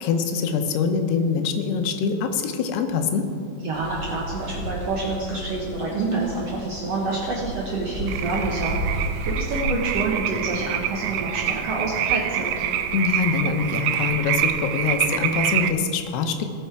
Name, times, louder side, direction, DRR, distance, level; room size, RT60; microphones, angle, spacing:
voice 1, 0.0-3.3 12.9-16.5, left 5 dB, 85° left, 7 dB, 2.9 m, -24 dB
voice 2, 3.6-8.8 9.2-12.7, right 3 dB, 65° right, -3 dB, 1.6 m, -27 dB
sound 1, 3.7-9.4, equal, 45° left, 3.0 m, -33 dB
sound 2, 8.1-15.7, right 10 dB, 80° right, 2.3 m, -26 dB
19.0 x 6.5 x 4.6 m, 2.4 s
omnidirectional pair, 4.6 m